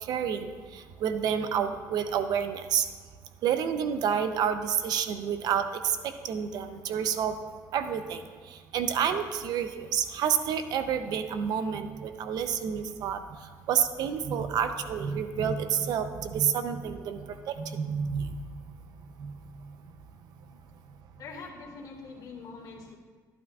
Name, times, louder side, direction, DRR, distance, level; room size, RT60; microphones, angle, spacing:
voice 1, 0.0-2.9 3.4-7.3 7.7-8.2 8.5-13.2 13.7-18.3 19.2-19.3, right 8 dB, 70° right, 9 dB, 0.7 m, -29 dB
voice 2, 21.2-23.0, left 4 dB, 65° left, -3 dB, 2.1 m, -44 dB
12.0 x 11.5 x 2.4 m, 1.5 s
cardioid pair, 105°, 7 cm